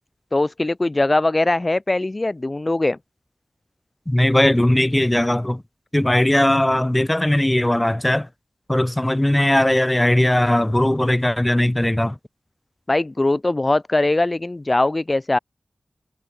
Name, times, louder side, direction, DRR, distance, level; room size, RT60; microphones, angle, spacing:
voice 1, 0.3-3.0 12.9-15.4, left 2 dB, 30° left, 0.6 m, -21 dB
voice 2, 4.1-5.6 5.9-8.3 8.7-12.2, left 1 dB, 15° left, 3.9 m, -18 dB
wide cardioid pair, 80°, 0 cm